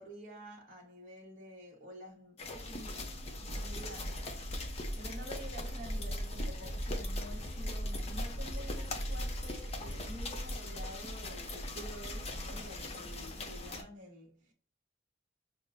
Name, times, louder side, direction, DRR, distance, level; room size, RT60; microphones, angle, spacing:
voice 1, 0.0-4.3 5.0-14.5, equal, 40° right, 1.1 m, -49 dB
sound 1, 2.4-13.8, left 1 dB, 35° left, 0.6 m, -38 dB
6.1 x 2.1 x 2.5 m
head